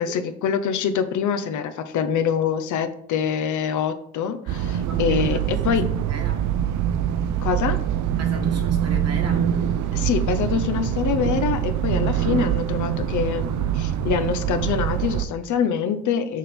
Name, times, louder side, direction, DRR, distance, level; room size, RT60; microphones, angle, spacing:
voice 1, 0.0-5.8 7.4-7.8 9.9-16.4, left 7 dB, 75° left, 8 dB, 0.8 m, -25 dB
sound 1, 4.5-15.3, right 10 dB, 75° right, 0.6 m, -24 dB
voice 2, 4.8-6.4 8.2-9.5, right 3 dB, 55° right, 2 dB, 1.6 m, -37 dB
6.4 x 3.5 x 5.8 m, 0.67 s
cardioid pair, 90°, 30 cm